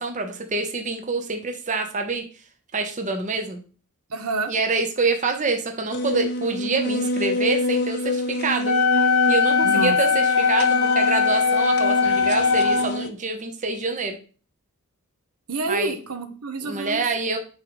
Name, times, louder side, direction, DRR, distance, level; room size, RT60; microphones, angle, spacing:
voice 1, 0.0-2.2 2.7-3.6 4.5-8.7 9.3-14.2 15.7-15.9 16.6-17.4, right 4 dB, 35° right, 5 dB, 0.8 m, -26 dB
voice 2, 4.1-4.5 9.6-10.0 15.5-17.0, right 3 dB, 75° right, 7 dB, 0.9 m, -28 dB
sound 1, 5.9-13.1, left 2 dB, 50° left, 0.7 m, -26 dB
Wind instrument woodwind instrument, 8.6-12.9, left 5 dB, 80° left, 0.8 m, -20 dB
9.4 x 3.8 x 3.1 m, 0.38 s
head